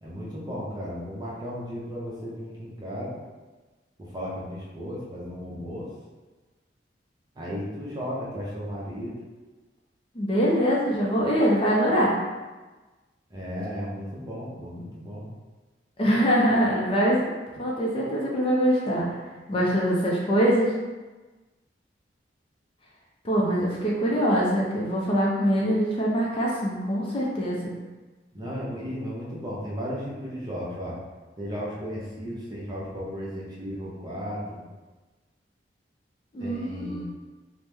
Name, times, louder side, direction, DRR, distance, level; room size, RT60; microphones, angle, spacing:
voice 1, 0.0-3.1 4.0-5.9 7.3-9.1 13.3-15.3 28.3-31.0 31.4-34.6 36.4-37.0, equal, 25° right, -6 dB, 0.7 m, -35 dB
voice 2, 10.1-12.1 16.0-17.2 17.5-19.1 19.5-20.7 23.2-27.7 36.3-37.0, equal, 30° left, -4 dB, 0.4 m, -23 dB
3.0 x 2.0 x 3.3 m, 1.2 s
head